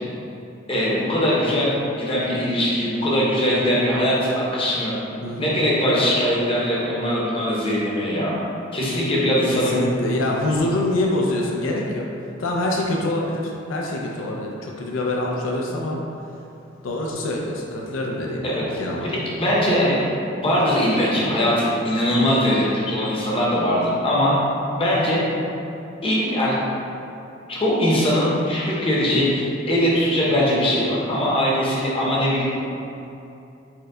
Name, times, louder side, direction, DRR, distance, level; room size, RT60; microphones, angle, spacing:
voice 1, 0.7-4.9 5.4-8.3 8.7-9.8 18.6-18.7 19.0-19.1 19.4-20.0 20.4-24.4 24.8-25.2 26.0-26.6 27.5-32.4, equal, 30° left, -6 dB, 0.7 m, -21 dB
voice 2, 5.2-5.6 9.5-12.1 12.4-16.0 16.8-19.2, left 1 dB, 80° left, -1 dB, 0.4 m, -25 dB
4.3 x 2.2 x 3.7 m, 2.8 s
head